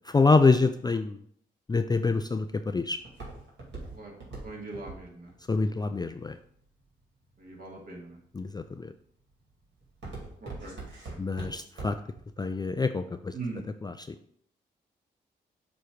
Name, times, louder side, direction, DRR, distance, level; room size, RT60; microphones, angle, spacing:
voice 1, 0.1-1.2 1.7-3.0 5.5-6.4 8.3-8.9 11.2-12.0 12.4-13.3 13.8-14.1, left 3 dB, 20° left, 9 dB, 0.4 m, -26 dB
Walk footsteps, 2.5-7.0 7.6-8.1 8.6-9.0 9.3-12.2 12.5-12.6, right 3 dB, 65° right, 2.6 m, -42 dB
voice 2, 4.4-5.3 7.4-8.2 10.4-10.8 13.3-13.6, right 3 dB, 45° right, -1 dB, 2.1 m, -40 dB
6.7 x 3.1 x 4.9 m, 0.64 s
hypercardioid pair, 45°, 20 cm